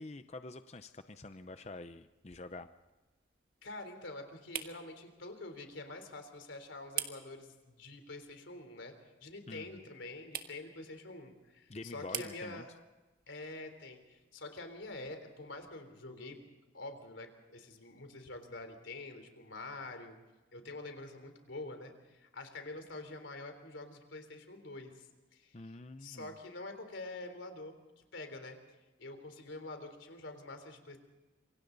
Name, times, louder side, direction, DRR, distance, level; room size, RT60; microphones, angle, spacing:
voice 1, 0.0-2.7 9.5-9.8 11.7-12.6 25.5-26.4, left 2 dB, 35° left, 10 dB, 0.6 m, -47 dB
sound 1, 1.0-15.8, right 10 dB, 50° right, 1.6 m, -49 dB
voice 2, 3.6-8.9 9.2-12.7 13.3-16.5 16.7-20.2 20.5-25.1 25.3-28.6 29.0-31.0, left 2 dB, 90° left, 7 dB, 3.7 m, -46 dB
27.0 x 24.5 x 4.0 m, 1.2 s
head